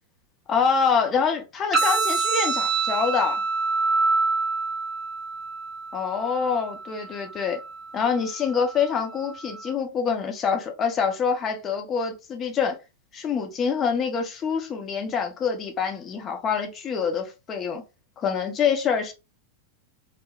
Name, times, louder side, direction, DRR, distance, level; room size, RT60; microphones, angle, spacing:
voice 1, 0.5-3.4 5.9-7.6 7.9-12.8 13.1-17.8 18.2-19.1, left 6 dB, 25° left, 0.6 m, -25 dB
sound 1, 1.7-9.7, right 4 dB, 20° right, 1.0 m, -27 dB
3.0 x 2.0 x 2.3 m
figure-of-eight pair, 90°, 0 cm